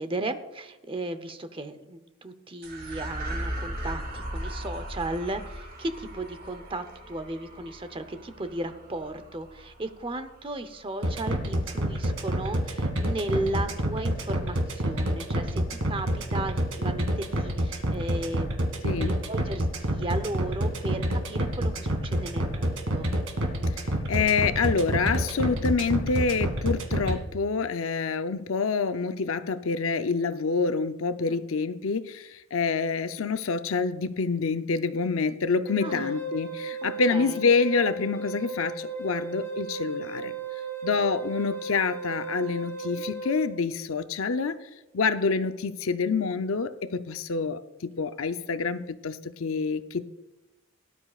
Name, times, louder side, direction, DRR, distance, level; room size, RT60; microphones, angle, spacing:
voice 1, 0.0-18.5 18.9-23.1 31.3-31.4 35.8-36.2 37.1-37.4, right 2 dB, 25° right, 10 dB, 0.8 m, -35 dB
sound 1, 2.6-11.2, right 1 dB, 50° right, 2.8 m, -38 dB
sound 2, 11.0-27.1, equal, 85° right, 2.2 m, -27 dB
voice 2, 24.1-40.3 40.8-44.6 44.9-50.0, left 4 dB, 75° left, 10 dB, 0.6 m, -27 dB
Wind instrument woodwind instrument, 35.7-43.5, right 3 dB, 10° left, 1.7 m, -35 dB
18.0 x 11.0 x 2.4 m, 1.0 s
head